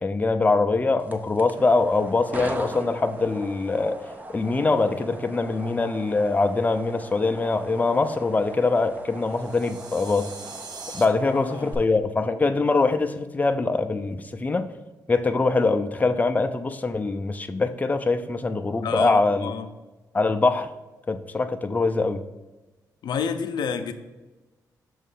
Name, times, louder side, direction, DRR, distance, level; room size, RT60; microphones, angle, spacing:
voice 1, 0.0-4.0 4.3-10.3 10.9-14.7 15.1-19.5 20.1-20.7 21.1-22.2, left 3 dB, 20° left, 8 dB, 0.5 m, -23 dB
sound 1, 1.0-11.7, right 1 dB, 25° right, 0.7 m, -39 dB
sound 2, 9.2-11.1, right 4 dB, 75° right, 0.8 m, -42 dB
voice 2, 11.2-11.7 18.8-19.7 23.0-23.9, left 6 dB, 85° left, 7 dB, 0.5 m, -29 dB
6.6 x 3.1 x 5.4 m, 1.2 s
cardioid pair, 80°, 7 cm